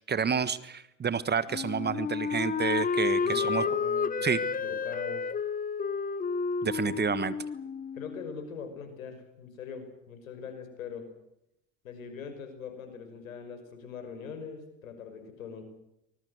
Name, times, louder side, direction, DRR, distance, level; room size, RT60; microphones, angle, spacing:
voice 1, 0.1-3.6 4.2-4.4 6.6-7.3, right 6 dB, 25° right, 15 dB, 1.5 m, -29 dB
Wind instrument woodwind instrument, 1.5-8.3, left 5 dB, 20° left, 1.3 m, -31 dB
voice 2, 3.2-5.3 6.8-6.9 7.9-11.1 11.8-15.6, left 6 dB, 80° left, 8 dB, 5.7 m, -42 dB
24.5 x 20.5 x 8.1 m, 0.82 s
hypercardioid pair, 75°, 40 cm